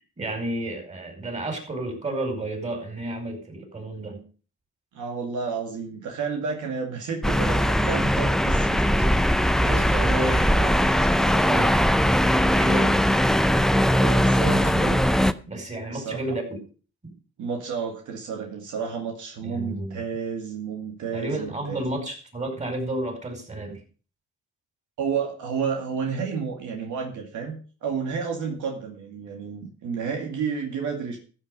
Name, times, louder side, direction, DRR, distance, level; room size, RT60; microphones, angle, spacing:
voice 1, 0.2-4.2 9.6-11.7 12.5-12.9 14.3-15.0 15.5-16.4 17.0-17.1 19.4-20.0 21.1-23.8, right 1 dB, 25° right, 4 dB, 4.9 m, -31 dB
voice 2, 4.9-9.1 13.9-14.8 15.9-16.4 17.4-21.8 25.0-31.2, right 6 dB, 75° right, 2 dB, 2.3 m, -31 dB
sound 1, 7.2-15.3, equal, ahead, 0.6 m, -20 dB
14.0 x 6.6 x 5.4 m, 0.38 s
cardioid pair, 90°, 30 cm